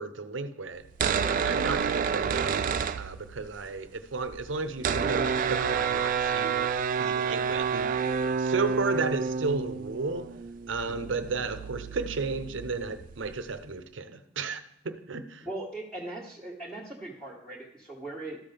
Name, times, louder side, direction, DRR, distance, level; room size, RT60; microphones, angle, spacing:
voice 1, 0.0-6.7 7.0-10.3 10.7-15.5, right 4 dB, 85° right, 10 dB, 0.7 m, -33 dB
sound 1, 0.8-3.6 3.9-4.0 4.1-13.6, right 6 dB, 45° right, 0.3 m, -29 dB
voice 2, 15.4-18.4, right 2 dB, 5° left, -7 dB, 1.3 m, -39 dB
13.0 x 5.7 x 3.4 m, 0.80 s
head